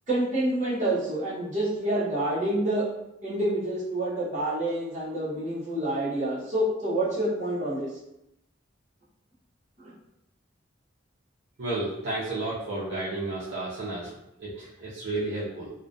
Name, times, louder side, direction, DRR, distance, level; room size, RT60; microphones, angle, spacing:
voice 1, 0.1-2.8 3.2-7.9 9.8-9.9, right 1 dB, 35° right, -9 dB, 0.8 m, -27 dB
voice 2, 11.6-14.1 14.4-15.7, right 2 dB, 55° right, -8 dB, 0.5 m, -32 dB
2.4 x 2.1 x 2.5 m, 0.85 s
head